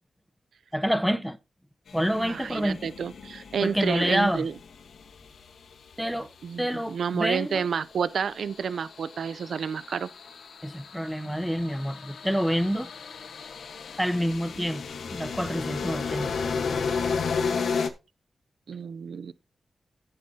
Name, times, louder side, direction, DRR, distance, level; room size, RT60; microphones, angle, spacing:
voice 1, 0.7-1.4 1.9-2.9 3.6-4.5 6.0-6.3 6.6-7.7 10.6-12.9 14.0-14.8 15.1-16.3, equal, ahead, 0.7 m, -27 dB
sound 1, 1.9-6.2 7.7-17.9, left 5 dB, 85° left, 1.2 m, -34 dB
voice 2, 2.1-4.5 6.4-10.1 18.7-19.3, right 7 dB, 80° right, 0.5 m, -30 dB
15.0 x 6.6 x 2.8 m
wide cardioid pair, 140°, 0 cm